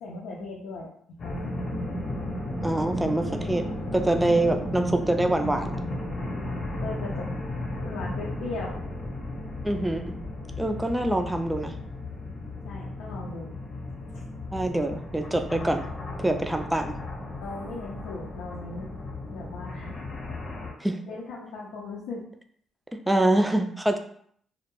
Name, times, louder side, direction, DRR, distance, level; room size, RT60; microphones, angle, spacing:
voice 1, 0.0-1.5 6.8-7.3 7.8-8.9 12.6-13.5 14.1-14.2 17.4-18.9 19.3-20.0 21.1-22.2, left 3 dB, 90° left, -4 dB, 0.5 m, -38 dB
sound 1, 1.2-20.7, left 1 dB, 50° left, 0.7 m, -34 dB
voice 2, 2.6-5.7 9.6-10.2 10.6-11.8 14.5-15.8 16.2-17.0 20.8-21.0 23.1-24.0, right 1 dB, 10° right, 6 dB, 0.3 m, -25 dB
2.2 x 2.1 x 3.0 m, 0.62 s
cardioid pair, 90°, 0 cm